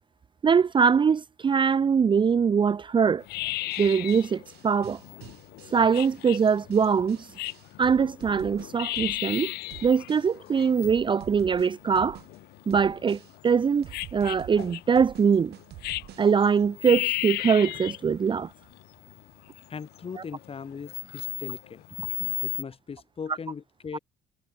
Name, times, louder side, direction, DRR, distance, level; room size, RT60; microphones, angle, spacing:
voice 1, 0.4-3.2 3.8-5.0 5.7-7.3 7.8-9.5 9.8-12.2 12.7-13.9 14.1-15.5 16.2-18.5 23.9-24.0, right 6 dB, 30° right, 0.6 m, -22 dB
sound 1, 3.2-22.6, left 18 dB, 75° left, 0.5 m, -35 dB
sound 2, 3.7-9.4 9.7-10.5 10.8-12.4 12.7-13.5 13.8-16.5, right 15 dB, 75° right, 5.5 m, -47 dB
voice 2, 19.7-21.8 22.4-24.0, left 6 dB, 35° left, 4.4 m, -39 dB
cardioid pair, 110°, 17 cm